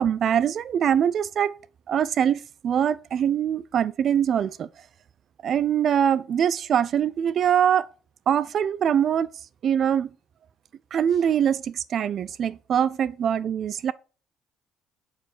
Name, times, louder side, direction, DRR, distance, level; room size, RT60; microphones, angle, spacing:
voice 1, 0.0-1.5 1.9-4.7 5.4-7.9 8.3-9.3 9.6-10.1 10.9-13.9, right 9 dB, 55° right, 0.5 m, -23 dB
6.5 x 4.8 x 6.2 m
cardioid pair, 90°, 0 cm